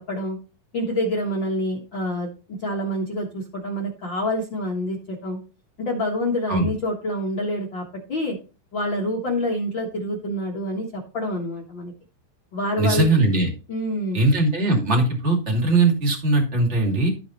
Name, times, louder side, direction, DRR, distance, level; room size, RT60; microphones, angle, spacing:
voice 1, 0.7-2.3 2.6-5.4 5.8-8.4 8.7-11.9 12.5-13.1 13.7-14.2, left 1 dB, 60° left, -1 dB, 1.2 m, -27 dB
voice 2, 12.8-13.5 14.1-17.1, right 2 dB, 20° right, 1 dB, 2.1 m, -20 dB
13.5 x 5.0 x 4.2 m, 0.33 s
omnidirectional pair, 4.7 m